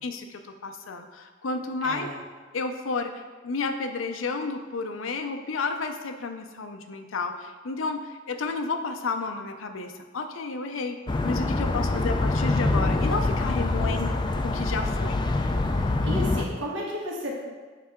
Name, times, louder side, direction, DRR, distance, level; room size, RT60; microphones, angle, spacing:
voice 1, 0.0-2.1 2.5-11.0 11.2-14.1 14.4-15.2, left 4 dB, 80° left, 7 dB, 0.5 m, -31 dB
voice 2, 1.8-2.2 13.8-14.1 15.7-17.4, equal, 65° right, -4 dB, 1.5 m, -34 dB
sound 1, 11.1-16.5, left 2 dB, 25° left, 0.3 m, -25 dB
8.7 x 3.3 x 3.6 m, 1.4 s
head